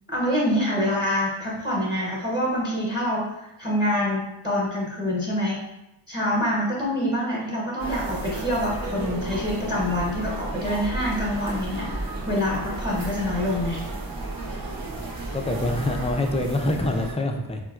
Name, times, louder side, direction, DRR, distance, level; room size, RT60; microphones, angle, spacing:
voice 1, 0.1-5.6 6.1-13.8, left 1 dB, 10° right, -5 dB, 0.9 m, -26 dB
sound 1, 7.8-17.1, right 2 dB, 45° right, 0.7 m, -33 dB
voice 2, 15.0-17.6, left 1 dB, 15° left, 3 dB, 0.3 m, -26 dB
4.2 x 2.1 x 2.3 m, 0.88 s
cardioid pair, 50°, 48 cm